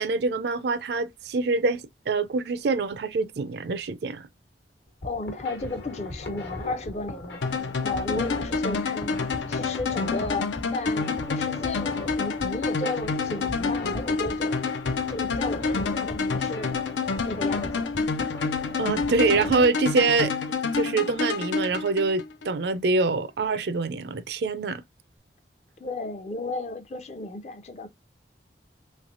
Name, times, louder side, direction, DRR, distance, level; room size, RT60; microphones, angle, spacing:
voice 1, 0.0-4.3 18.8-20.3 20.7-24.8, right 3 dB, 65° right, 0.4 m, -25 dB
sound 1, 4.9-19.6, left 1 dB, 65° left, 1.1 m, -38 dB
voice 2, 5.0-9.1 9.5-14.6 15.1-16.8 17.2-17.9 25.8-27.9, left 2 dB, 35° left, 0.5 m, -34 dB
sound 2, 7.4-22.5, left 4 dB, 85° left, 0.5 m, -28 dB
3.5 x 3.2 x 2.5 m
head